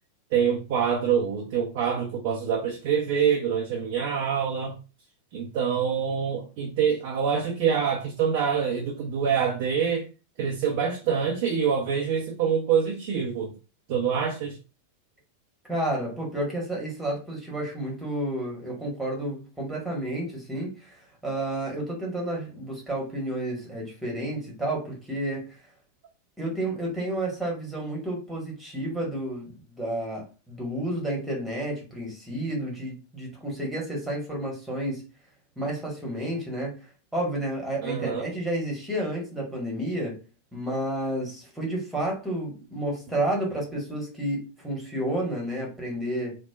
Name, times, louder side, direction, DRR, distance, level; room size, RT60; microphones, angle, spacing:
voice 1, 0.3-4.8 5.3-10.1 10.4-13.5 13.9-14.6 37.8-38.3, right 7 dB, 50° right, 0.5 m, -25 dB
voice 2, 15.7-25.5 26.4-35.0 35.6-36.8 37.1-40.2 40.5-46.4, right 1 dB, 5° right, 1.3 m, -31 dB
3.1 x 2.1 x 2.3 m
figure-of-eight pair, 90°, 0 cm